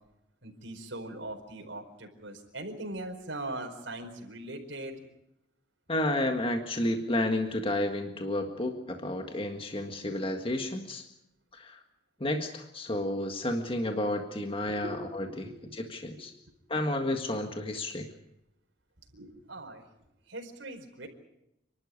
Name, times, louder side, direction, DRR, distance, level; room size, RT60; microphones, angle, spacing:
voice 1, 0.4-5.0 14.7-16.0 19.1-19.9 20.3-21.1, right 1 dB, 70° right, 2 dB, 4.7 m, -41 dB
voice 2, 5.9-11.0 11.5-11.8 12.2-16.3 16.7-18.1, left 1 dB, 30° left, 4 dB, 1.7 m, -31 dB
29.0 x 12.5 x 9.7 m, 0.86 s
head